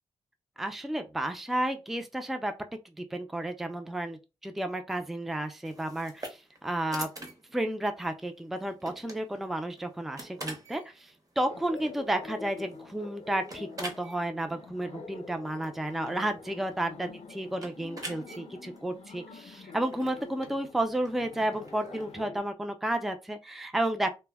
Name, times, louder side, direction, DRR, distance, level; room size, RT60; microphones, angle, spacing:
voice 1, 0.6-2.5 3.0-7.1 7.5-24.1, right 1 dB, ahead, 0.4 m, -32 dB
sound 1, 5.6-22.1, right 2 dB, 30° right, 0.8 m, -47 dB
Laughter, 11.5-22.4, left 4 dB, 70° left, 0.6 m, -46 dB
2.1 x 2.1 x 3.4 m
cardioid pair, 65°, 11 cm